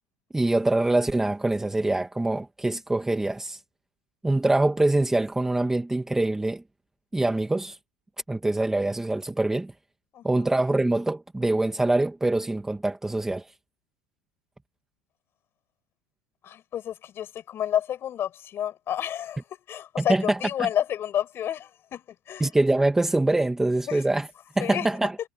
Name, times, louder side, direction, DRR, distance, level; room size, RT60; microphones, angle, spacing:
voice 1, 0.3-3.6 4.2-6.6 7.1-7.8 8.3-9.7 10.2-13.4 20.0-20.4 22.4-24.3 24.6-25.1, right 2 dB, 5° right, 1.4 m, -24 dB
voice 2, 10.1-10.5 16.4-19.4 19.7-22.5 23.9-24.0 24.6-24.9, left 10 dB, 30° left, 7.3 m, -30 dB
supercardioid pair, 155°, 8 cm